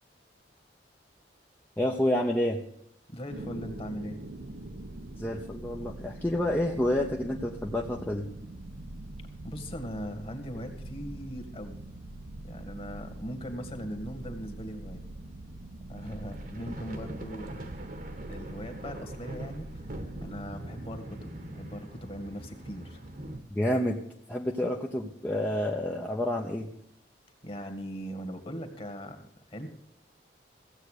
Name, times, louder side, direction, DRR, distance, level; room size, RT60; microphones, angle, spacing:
voice 1, 1.8-2.6 5.2-8.3 23.5-24.0 24.3-26.7, left 1 dB, 10° left, -1 dB, 0.8 m, -29 dB
voice 2, 3.1-4.2 9.4-11.8 12.4-15.0 15.9-17.7 18.3-23.0 27.4-29.7, equal, 30° left, 5 dB, 1.9 m, -40 dB
sound 1, 3.3-20.3, right 1 dB, 75° right, 1.2 m, -43 dB
sound 2, 15.9-23.4, right 1 dB, 50° right, 1.4 m, -42 dB
15.5 x 8.2 x 6.5 m, 0.71 s
head